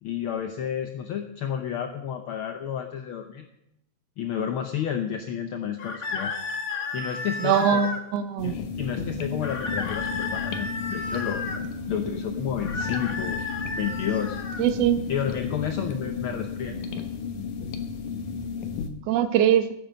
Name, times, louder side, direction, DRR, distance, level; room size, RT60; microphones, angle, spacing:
voice 1, 0.0-3.5 4.2-6.4 6.9-7.9 8.4-11.4 11.9-13.4 13.8-14.4 15.1-16.7, left 9 dB, 75° left, 6 dB, 1.2 m, -31 dB
sound 1, 5.8-8.0 9.4-11.6 12.6-14.6, left 3 dB, 55° left, 1.0 m, -33 dB
voice 2, 7.4-8.6 14.6-15.0 19.1-19.7, right 9 dB, 65° right, 9 dB, 1.9 m, -22 dB
sound 2, 8.4-18.9, left 5 dB, 90° left, 2.6 m, -33 dB
sound 3, 8.8-17.2, left 1 dB, 15° left, 6.9 m, -50 dB
16.0 x 9.5 x 5.2 m, 0.85 s
omnidirectional pair, 3.3 m